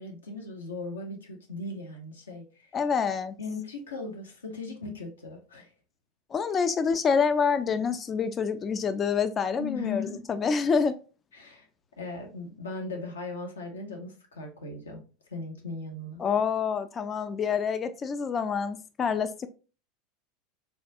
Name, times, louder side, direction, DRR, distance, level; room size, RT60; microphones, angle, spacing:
voice 1, 0.0-2.7 3.4-5.7 9.6-10.3 11.3-11.7 12.0-15.0 15.3-16.2, left 3 dB, 75° left, 2 dB, 0.8 m, -38 dB
voice 2, 2.7-3.3 6.3-10.9 16.2-19.5, left 6 dB, 30° left, 12 dB, 0.3 m, -27 dB
4.3 x 2.3 x 2.7 m, 0.35 s
figure-of-eight pair, 80°, 0 cm